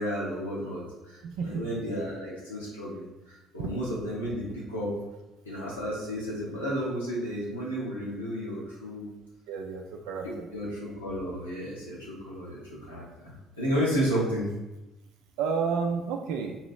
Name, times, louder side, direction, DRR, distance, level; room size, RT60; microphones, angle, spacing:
voice 1, 0.0-4.9 5.4-9.1 10.2-14.5, equal, 90° left, -7 dB, 1.3 m, -32 dB
voice 2, 1.2-1.6 9.5-10.5 15.4-16.6, right 5 dB, 65° right, 2 dB, 0.4 m, -31 dB
3.8 x 2.9 x 4.7 m, 0.98 s
figure-of-eight pair, 50°, 0 cm